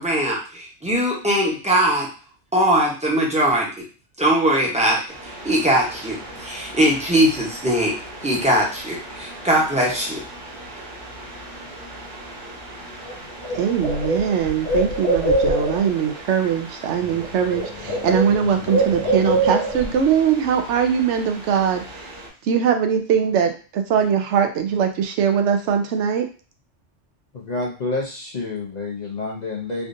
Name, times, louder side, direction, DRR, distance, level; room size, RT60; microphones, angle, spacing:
voice 1, 0.0-2.1 2.5-3.7 4.2-7.9 8.2-10.2, right 1 dB, 5° right, -3 dB, 0.8 m, -20 dB
sound 1, 5.1-22.3, right 1 dB, 45° right, 1.2 m, -39 dB
Bird, 13.1-13.2 13.4-15.9 17.0-17.3 17.5-19.9, right 1 dB, 75° left, 1.0 m, -23 dB
voice 2, 13.5-22.1 22.4-26.2, right 7 dB, 80° right, 5 dB, 0.9 m, -21 dB
voice 3, 27.3-29.9, left 3 dB, 50° left, -3 dB, 0.6 m, -28 dB
3.5 x 2.5 x 2.6 m, 0.36 s
omnidirectional pair, 1.2 m